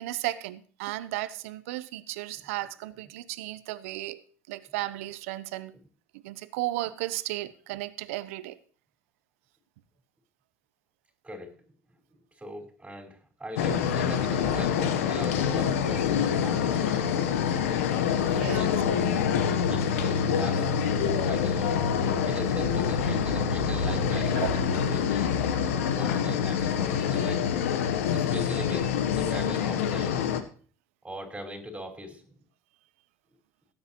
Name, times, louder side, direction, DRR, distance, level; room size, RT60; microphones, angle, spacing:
voice 1, 0.0-5.7 6.2-8.6 18.2-18.7 24.4-24.6, right 16 dB, 75° right, 0.8 m, -34 dB
voice 2, 11.2-11.6 12.4-17.4 18.3-18.8 19.7-20.7 21.2-21.8 22.3-25.4 26.0-27.4 28.1-30.2 31.0-32.3, equal, 15° right, 5.1 m, -40 dB
sound 1, 13.6-30.4, left 7 dB, 85° left, 1.1 m, -26 dB
17.5 x 9.5 x 3.1 m
hypercardioid pair, 70°, 7 cm